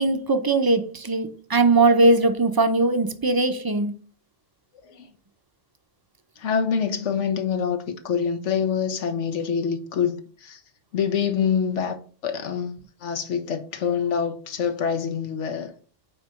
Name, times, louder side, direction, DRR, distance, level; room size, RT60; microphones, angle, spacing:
voice 1, 0.0-3.9, right 2 dB, 25° right, 0.6 m, -20 dB
voice 2, 4.8-5.1 6.4-10.6 10.9-15.7, left 7 dB, 90° left, 1.3 m, -26 dB
5.9 x 4.6 x 5.2 m
omnidirectional pair, 1.2 m